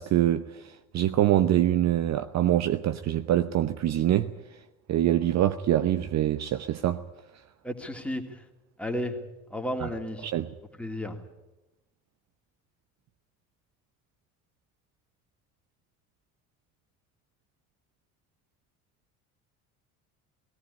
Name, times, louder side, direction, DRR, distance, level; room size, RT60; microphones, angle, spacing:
voice 1, 0.0-4.3 4.9-7.0 9.8-9.9 10.2-10.5, right 12 dB, 40° right, 0.8 m, -25 dB
voice 2, 7.6-8.4 8.8-10.3 10.8-11.2, equal, 5° left, 2.9 m, -33 dB
18.5 x 17.0 x 9.9 m
figure-of-eight pair, 60°, 43 cm